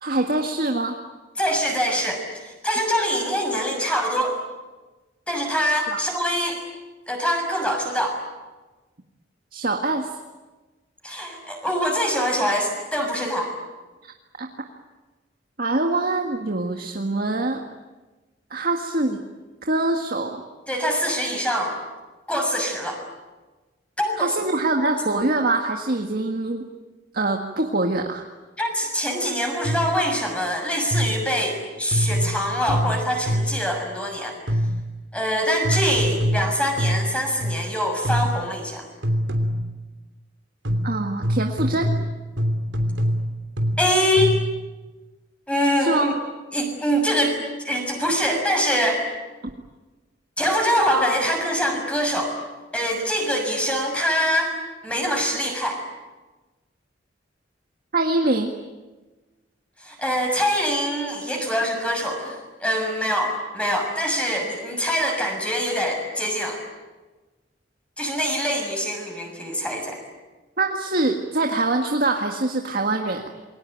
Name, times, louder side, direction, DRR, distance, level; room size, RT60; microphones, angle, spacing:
voice 1, 0.0-1.0 5.9-6.0 9.5-10.1 14.0-14.1 14.4-14.5 15.6-17.6 18.5-19.2 19.6-20.4 24.2-26.7 27.1-28.2 40.8-41.9 45.8-46.1 57.9-58.5 70.6-73.3, right 2 dB, 50° right, 3 dB, 1.8 m, -24 dB
voice 2, 1.4-4.4 5.3-6.6 7.1-8.2 11.0-13.5 20.7-21.8 22.3-23.0 24.0-24.3 28.6-34.3 35.1-38.9 43.8-44.3 45.5-46.1 46.5-47.4 47.6-49.0 50.4-52.3 52.7-54.5 54.8-55.8 59.8-66.6 68.0-70.0, equal, 5° left, 2 dB, 6.7 m, -24 dB
sound 1, 29.6-30.0 30.9-31.4 31.9-33.7 34.5-34.9 35.6-37.7 38.0-38.5 39.0-39.8 40.6-44.6, equal, 75° right, 3.2 m, -25 dB
28.5 x 22.5 x 9.2 m, 1.2 s
head